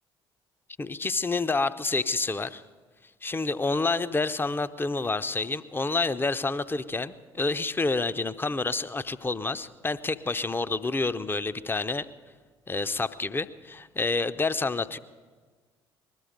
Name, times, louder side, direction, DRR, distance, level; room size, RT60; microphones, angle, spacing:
voice 1, 0.8-2.6 3.2-12.1 12.7-15.0, left 3 dB, 15° left, 12 dB, 0.6 m, -28 dB
21.0 x 13.0 x 5.2 m, 1.5 s
figure-of-eight pair, 50°, 13 cm